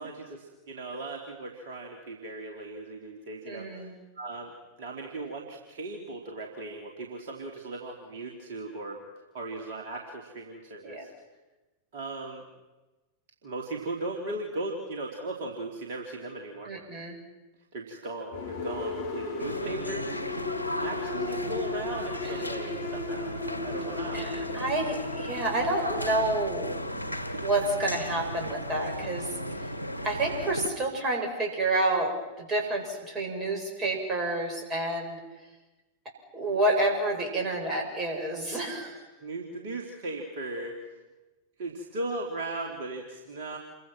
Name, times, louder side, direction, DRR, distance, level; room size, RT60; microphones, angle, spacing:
voice 1, 0.0-4.5 4.8-9.0 9.3-11.1 11.9-12.4 13.4-16.7 17.7-20.2 20.8-24.3 39.0-40.8 41.6-43.6, right 2 dB, 55° right, 0 dB, 3.3 m, -37 dB
voice 2, 3.4-3.9 10.8-11.0 16.7-17.2 24.1-26.7 27.4-29.3 30.0-35.2 36.3-39.0, right 2 dB, 25° right, 2 dB, 7.9 m, -29 dB
sound 1, 18.3-27.0, left 4 dB, 60° left, 4.1 m, -36 dB
sound 2, 19.4-30.7, equal, 85° right, 1.9 m, -35 dB
28.5 x 24.5 x 6.2 m, 1.1 s
figure-of-eight pair, 90°, 0 cm